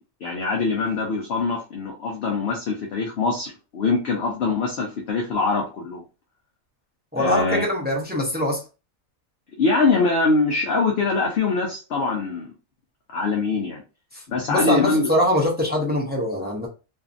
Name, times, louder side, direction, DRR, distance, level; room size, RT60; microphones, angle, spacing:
voice 1, 0.2-6.0 7.2-7.6 9.6-12.5 13.1-13.8 14.3-15.1, left 3 dB, 60° left, 0 dB, 0.8 m, -23 dB
voice 2, 7.1-8.6 14.5-16.7, left 1 dB, 15° right, -2 dB, 0.3 m, -23 dB
2.7 x 2.4 x 2.5 m, 0.31 s
omnidirectional pair, 1.4 m